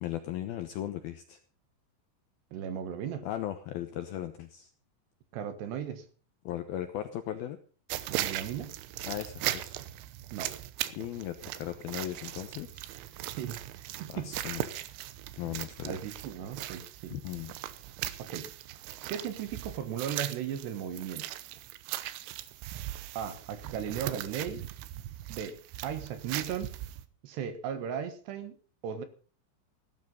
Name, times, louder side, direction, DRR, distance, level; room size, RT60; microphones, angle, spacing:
voice 1, 0.0-1.4 3.2-4.7 6.5-7.6 9.0-9.8 10.9-12.9 14.1-14.8 15.4-16.0 17.1-17.5, left 12 dB, 75° left, 9 dB, 2.3 m, -37 dB
voice 2, 2.5-3.3 5.3-6.1 8.1-8.8 10.3-10.5 13.2-14.3 15.8-17.2 18.2-18.5 19.1-21.3 23.2-24.6 25.3-26.7 27.2-28.6 28.8-29.0, right 8 dB, 70° right, 11 dB, 3.3 m, -37 dB
sound 1, 7.9-27.0, right 14 dB, 90° right, 3.4 m, -39 dB
16.5 x 12.5 x 5.4 m, 0.40 s
omnidirectional pair, 5.6 m